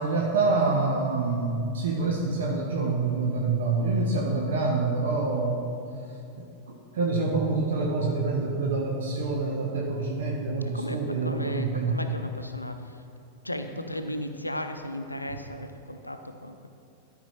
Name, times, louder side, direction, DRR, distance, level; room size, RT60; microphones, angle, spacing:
voice 1, 0.0-5.7 6.4-12.0, right 3 dB, 60° right, -1 dB, 0.9 m, -26 dB
voice 2, 10.7-12.8 13.4-16.7, left 1 dB, 85° left, 7 dB, 0.5 m, -35 dB
13.0 x 4.6 x 4.2 m, 2.7 s
figure-of-eight pair, 90°, 0 cm